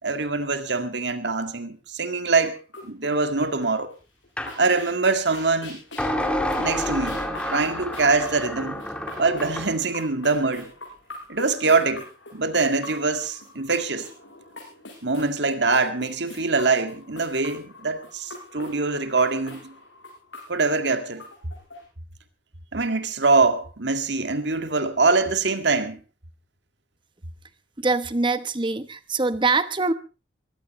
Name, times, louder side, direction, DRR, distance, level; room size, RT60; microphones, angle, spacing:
voice 1, 0.0-2.6 2.8-3.9 4.6-5.8 6.6-8.8 9.2-10.7 11.3-12.0 12.3-14.1 15.0-19.7 20.5-21.2 22.7-26.0, right 3 dB, 65° right, 2.0 m, -23 dB
sound 1, 2.4-3.9 4.2-21.8, left 2 dB, 75° left, 7.6 m, -43 dB
sound 2, 4.4-4.6 6.0-9.7, left 1 dB, 5° left, 2.3 m, -29 dB
voice 2, 27.8-29.9, right 3 dB, 25° right, 1.0 m, -23 dB
23.0 x 16.5 x 3.1 m
head